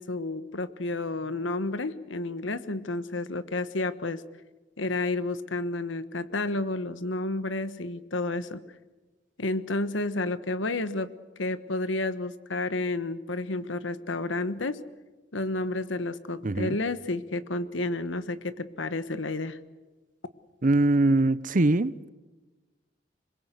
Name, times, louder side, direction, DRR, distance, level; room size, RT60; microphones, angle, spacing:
voice 1, 0.0-4.2 4.8-8.6 9.4-11.1 11.4-14.8 15.3-19.6, left 2 dB, 85° left, 1.3 m, -31 dB
voice 2, 16.4-16.8 20.6-21.9, right 2 dB, 45° right, 0.7 m, -22 dB
26.5 x 22.0 x 8.2 m
head